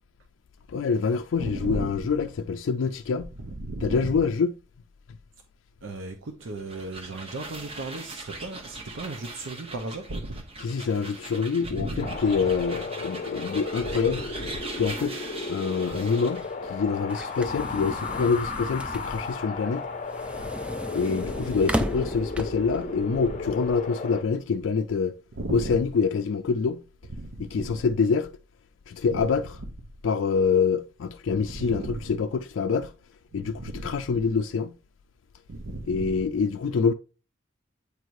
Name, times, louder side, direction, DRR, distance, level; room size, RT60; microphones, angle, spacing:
voice 1, 0.7-3.3 3.8-4.5 10.6-14.2 14.8-15.2 15.5-19.9 20.9-25.2 25.5-26.8 27.4-28.3 28.9-29.6 30.0-32.9 33.3-34.7 35.9-36.9, left 5 dB, 80° left, 0.4 m, -26 dB
voice 2, 1.4-2.0 3.4-4.3 5.8-10.4 11.6-12.5 13.8-14.6 15.9-16.0 21.1-21.4 23.1-23.5 25.3-25.8 27.1-27.9 29.1-29.7 31.3-32.1 33.3-33.9 35.5-36.3, right 2 dB, 80° right, 0.7 m, -36 dB
sound 1, 6.4-16.5, right 3 dB, 30° right, 0.9 m, -41 dB
Wind, 12.0-24.2, left 3 dB, 35° left, 0.6 m, -34 dB
sound 2, 16.3-22.8, equal, 5° right, 0.3 m, -35 dB
8.4 x 4.6 x 2.6 m
head